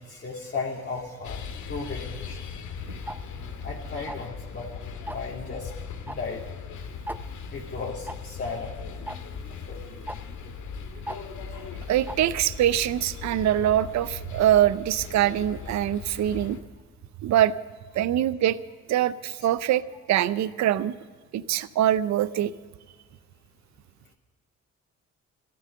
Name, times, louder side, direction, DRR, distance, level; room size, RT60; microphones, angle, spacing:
voice 1, 0.0-1.4 1.7-2.5 3.6-4.7 5.1-5.7 6.0-6.5 7.5-8.7 9.7-9.8 11.5-11.7 16.3-16.5, left 4 dB, 35° left, -4 dB, 2.5 m, -35 dB
sound 1, 1.2-16.6, left 6 dB, 75° left, 1.8 m, -39 dB
Tick-tock, 3.1-3.2 4.1-4.4 5.1-5.3 6.1-6.2 6.5-6.6 7.1-7.2 8.1-8.2 9.1-9.2 10.1-10.2 11.1-11.2 12.1-12.2, right 1 dB, 5° right, 0.7 m, -35 dB
voice 2, 11.9-16.6 17.2-17.5 17.9-18.6 18.9-19.8 20.1-20.9 21.3-22.5, right 12 dB, 65° right, 16 dB, 0.6 m, -23 dB
13.5 x 13.0 x 6.6 m, 1.5 s
cardioid pair, 90°, 30 cm